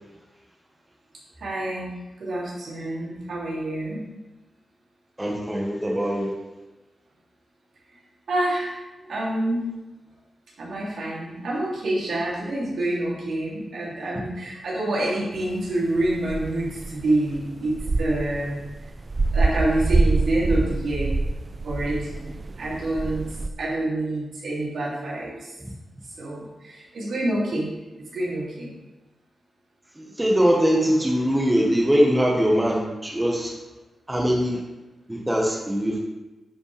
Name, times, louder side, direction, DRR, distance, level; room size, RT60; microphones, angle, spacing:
voice 1, 1.4-1.9 2.2-4.0 8.3-8.7 9.1-9.6 10.6-18.6 19.3-21.1 21.6-23.2 23.6-25.5 26.2-27.7 28.1-28.7, right 1 dB, 80° right, -6 dB, 2.9 m, -27 dB
voice 2, 5.2-6.3 30.0-33.5 34.1-34.6 35.1-36.0, equal, 10° right, -1 dB, 1.4 m, -22 dB
sound 1, 15.4-23.5, right 3 dB, 40° right, 0.4 m, -26 dB
10.0 x 5.3 x 3.4 m, 1.1 s
cardioid pair, 80°, 0 cm